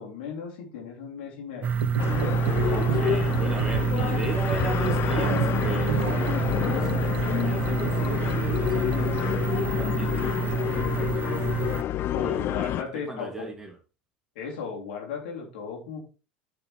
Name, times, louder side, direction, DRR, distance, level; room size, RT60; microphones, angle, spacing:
voice 1, 0.0-1.8 12.1-13.5 14.3-16.0, left 6 dB, 75° left, 3.0 m, -36 dB
sound 1, 1.6-11.8, right 7 dB, 35° right, 0.5 m, -28 dB
sound 2, 1.7-9.3, right 11 dB, 85° right, 0.6 m, -33 dB
sound 3, 2.0-12.8, left 12 dB, 45° left, 0.4 m, -28 dB
voice 2, 2.6-11.5 12.2-13.7, right 2 dB, 10° right, 2.6 m, -37 dB
10.5 x 5.9 x 3.3 m
hypercardioid pair, 85°, 5 cm